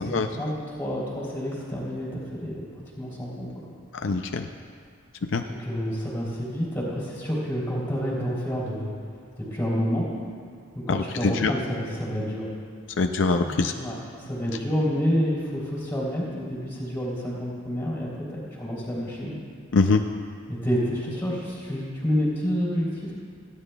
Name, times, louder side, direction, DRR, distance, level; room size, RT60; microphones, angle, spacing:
voice 1, 0.0-2.7 2.9-3.5 5.5-8.9 9.4-10.1 10.7-12.5 13.4-19.4 20.5-23.1, equal, 10° left, -5 dB, 3.4 m, -29 dB
voice 2, 3.9-4.5 5.3-5.4 10.9-11.5 13.0-13.7 19.7-20.0, left 3 dB, 65° left, 5 dB, 0.5 m, -23 dB
28.5 x 10.0 x 2.3 m, 2.2 s
head